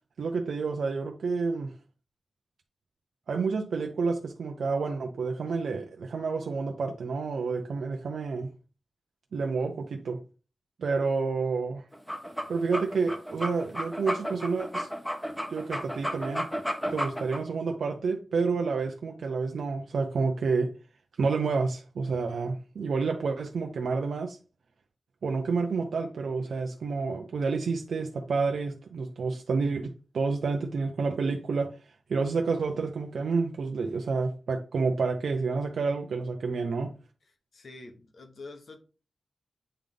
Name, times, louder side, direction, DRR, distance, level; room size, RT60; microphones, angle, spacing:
voice 1, 0.2-1.7 3.3-8.5 9.3-10.2 10.8-11.9 12.5-14.9 15.5-16.5 16.9-20.7 21.2-24.4 25.2-36.9, right 4 dB, 75° right, 3 dB, 0.6 m, -29 dB
sound 1, 11.9-17.4, equal, 5° left, 1.0 m, -33 dB
voice 2, 37.3-38.8, left 3 dB, 60° left, 5 dB, 1.2 m, -47 dB
8.7 x 3.5 x 3.8 m, 0.36 s
wide cardioid pair, 95°, 0 cm